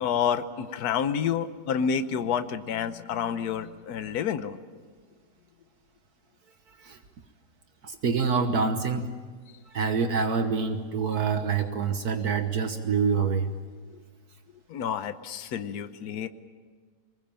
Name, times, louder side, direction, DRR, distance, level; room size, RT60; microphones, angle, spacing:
voice 1, 0.0-4.6 14.7-16.3, left 7 dB, 65° left, 11 dB, 1.4 m, -29 dB
voice 2, 6.7-7.0 7.8-9.1 9.7-13.5, right 5 dB, 65° right, 7 dB, 1.6 m, -26 dB
23.5 x 21.0 x 8.9 m, 1.5 s
omnidirectional pair, 1.8 m